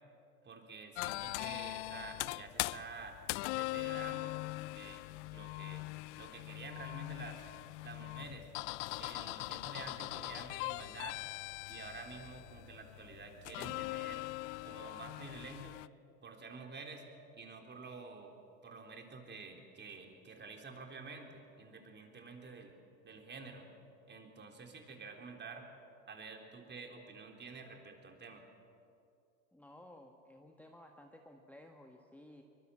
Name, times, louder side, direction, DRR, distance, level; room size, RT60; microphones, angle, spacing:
voice 1, 0.4-3.2 3.5-4.4 4.7-5.9 6.2-7.4 7.8-8.5 9.0-11.2 11.7-14.3 14.6-15.8 16.2-17.0 17.3-18.3 18.6-22.7 23.0-23.7 24.1-25.7 26.1-28.4, right 4 dB, 25° right, 3 dB, 3.7 m, -49 dB
sound 1, 1.0-15.9, left 23 dB, 55° left, 0.5 m, -41 dB
voice 2, 29.5-32.4, left 1 dB, 5° left, 2 dB, 1.6 m, -56 dB
23.5 x 21.5 x 7.7 m, 2.6 s
hypercardioid pair, 95°, 43 cm